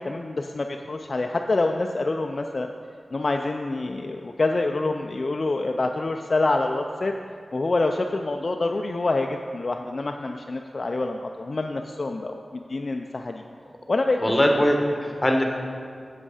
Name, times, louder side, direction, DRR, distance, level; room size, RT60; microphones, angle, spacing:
voice 1, 0.0-2.7 3.1-7.1 7.5-13.4 13.9-14.4, left 2 dB, 50° left, 4 dB, 0.3 m, -26 dB
voice 2, 14.2-15.4, equal, 20° left, 2 dB, 1.0 m, -21 dB
7.6 x 7.1 x 4.9 m, 2.3 s
wide cardioid pair, 90°, 0 cm